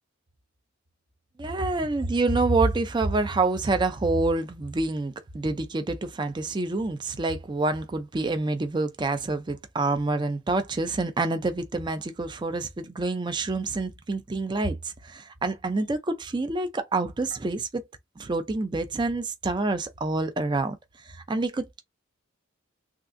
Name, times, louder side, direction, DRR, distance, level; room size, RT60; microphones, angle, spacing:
voice 1, 1.4-17.9 18.2-20.8 21.1-21.8, right 3 dB, 20° right, 0.4 m, -27 dB
3.5 x 2.4 x 2.5 m
head